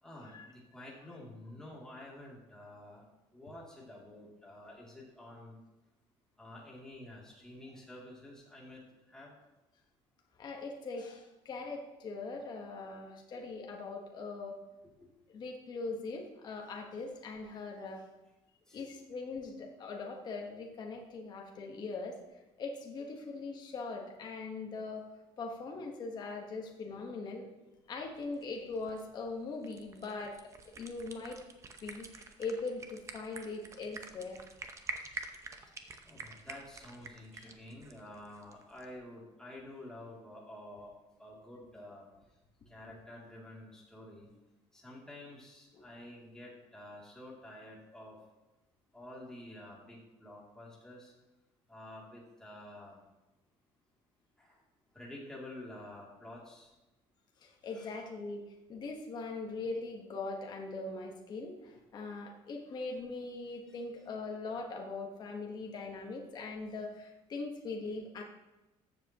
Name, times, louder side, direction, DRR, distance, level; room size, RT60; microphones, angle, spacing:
voice 1, 0.0-3.0 3.3-5.6 6.4-8.8 9.1-9.3 15.0-15.1 18.7-18.9 36.0-40.9 41.2-42.1 42.7-44.3 44.7-48.2 48.9-51.1 51.7-53.0 54.4-54.6 54.9-56.7 57.7-57.9, left 1 dB, 5° left, -4 dB, 2.7 m, -50 dB
voice 2, 10.4-14.6 15.3-18.0 18.7-22.2 22.6-25.1 25.4-27.5 27.9-30.4 30.7-31.4 31.8-34.4 37.4-37.5 57.4-58.4 58.7-68.2, left 3 dB, 40° left, 1 dB, 1.3 m, -41 dB
sound 1, 28.2-39.0, right 4 dB, 25° right, 0.8 m, -48 dB
13.5 x 7.5 x 3.0 m, 1.0 s
cardioid pair, 150°, 11 cm